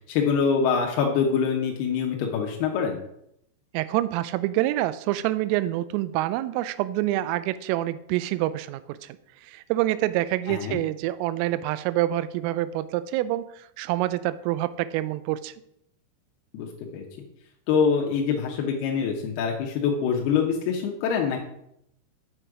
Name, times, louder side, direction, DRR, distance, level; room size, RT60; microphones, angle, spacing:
voice 1, 0.1-3.0 10.5-10.8 16.5-16.7 16.9-17.0 17.7-21.4, left 6 dB, 80° left, 0 dB, 2.3 m, -24 dB
voice 2, 3.7-9.2 9.5-15.5, right 15 dB, 85° right, 15 dB, 3.1 m, -27 dB
7.8 x 6.5 x 4.8 m, 0.76 s
omnidirectional pair, 5.7 m